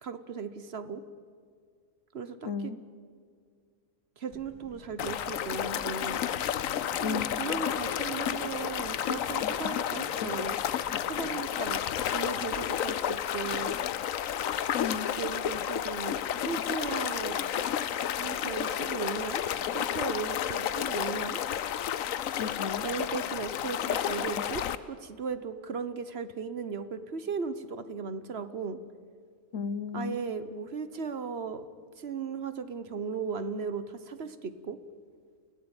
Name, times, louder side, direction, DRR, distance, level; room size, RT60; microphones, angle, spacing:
voice 1, 0.0-1.0 2.1-2.7 4.2-6.2 7.0-10.6 11.0-11.8 12.1-13.8 15.2-17.4 18.2-19.4 19.7-21.4 22.8-28.8 29.9-31.6 32.0-34.8, right 5 dB, 55° right, 12 dB, 1.2 m, -36 dB
voice 2, 2.4-2.8 7.0-7.4 14.7-15.1 22.4-22.9 29.5-30.2, left 6 dB, 70° left, 14 dB, 1.4 m, -34 dB
sound 1, 4.3-11.4, right 1 dB, 20° right, 1.6 m, -53 dB
sound 2, 5.0-24.8, left 10 dB, 85° left, 1.2 m, -31 dB
29.0 x 16.0 x 8.9 m, 2.1 s
omnidirectional pair, 1.3 m